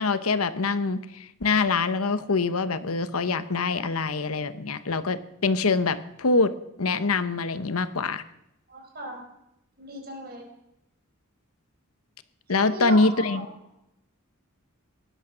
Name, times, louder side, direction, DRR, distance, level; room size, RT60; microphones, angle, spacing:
voice 1, 0.0-6.5 6.8-8.2 12.5-13.5, left 3 dB, 80° left, 13 dB, 1.0 m, -24 dB
voice 2, 8.7-9.2 9.8-10.5 12.6-13.5, right 2 dB, 45° right, 2 dB, 4.9 m, -36 dB
18.5 x 11.5 x 6.2 m, 0.85 s
head